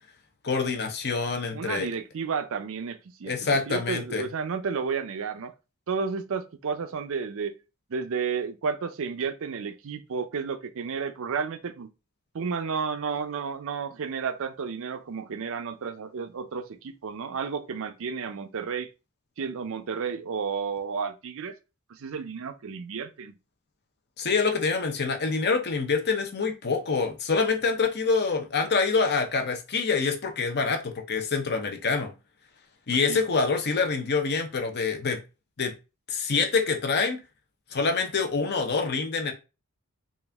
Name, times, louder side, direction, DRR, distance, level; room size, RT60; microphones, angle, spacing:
voice 1, 0.4-1.9 3.3-4.3 24.2-32.1 32.9-35.2 35.6-35.7 36.1-37.2 37.7-39.3, left 4 dB, 50° left, 0.8 m, -26 dB
voice 2, 1.5-3.4 3.7-5.5 5.9-7.6 7.9-11.9 12.3-18.9 19.4-21.5 21.9-23.3 32.9-33.2, right 5 dB, 65° right, 0.5 m, -32 dB
4.1 x 2.5 x 3.4 m
head